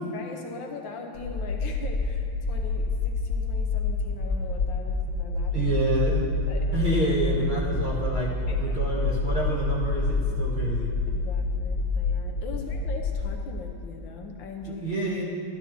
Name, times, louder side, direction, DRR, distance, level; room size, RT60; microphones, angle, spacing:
voice 1, 0.1-5.7 6.5-6.7 8.5-8.8 11.1-14.8, left 4 dB, 70° left, 3 dB, 1.3 m, -41 dB
sound 1, 1.1-13.2, left 3 dB, 55° left, 0.9 m, -27 dB
voice 2, 5.5-6.2 6.7-10.9 14.6-15.2, right 2 dB, 25° right, -7 dB, 1.3 m, -28 dB
12.5 x 12.0 x 2.8 m, 2.7 s
omnidirectional pair, 2.3 m